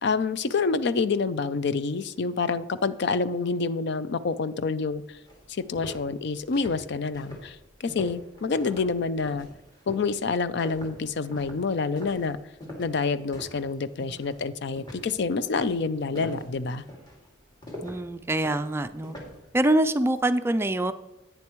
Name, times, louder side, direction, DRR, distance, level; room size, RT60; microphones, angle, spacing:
voice 1, 0.0-5.2 5.5-9.5 9.9-12.4 12.8-16.8, left 4 dB, 60° left, 14 dB, 0.5 m, -27 dB
sound 1, 5.3-13.7 14.0-14.4 14.8-19.5, left 1 dB, 20° left, 2.2 m, -42 dB
voice 2, 17.8-19.2 19.5-20.9, right 1 dB, 15° right, 10 dB, 0.3 m, -24 dB
10.5 x 9.1 x 3.0 m, 0.98 s
head